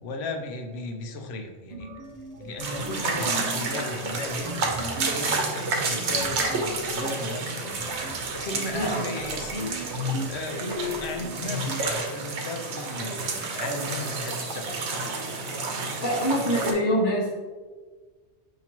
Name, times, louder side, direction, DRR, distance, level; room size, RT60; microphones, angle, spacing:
voice 1, 0.0-1.9 2.4-5.4 5.8-7.8 8.3-9.7 10.3-15.1, left 2 dB, 70° left, 5 dB, 0.8 m, -35 dB
sound 1, 1.7-12.0, left 2 dB, 50° right, 0.5 m, -37 dB
sound 2, 2.6-16.7, right 3 dB, 80° right, 1.0 m, -30 dB
voice 2, 16.0-17.3, equal, 50° left, -8 dB, 1.1 m, -24 dB
5.6 x 2.9 x 2.9 m, 1.4 s
omnidirectional pair, 1.2 m